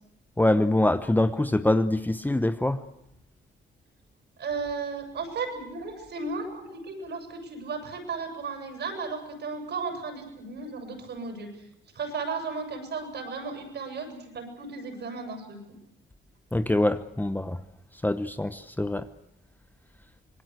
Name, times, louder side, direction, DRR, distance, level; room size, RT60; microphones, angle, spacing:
voice 1, 0.4-2.8 16.5-17.6 18.0-19.1, left 1 dB, 10° left, 11 dB, 1.0 m, -24 dB
voice 2, 4.4-11.5 11.9-15.6, right 4 dB, 60° right, 5 dB, 7.5 m, -35 dB
26.0 x 20.0 x 8.2 m, 0.82 s
cardioid pair, 90°, 20 cm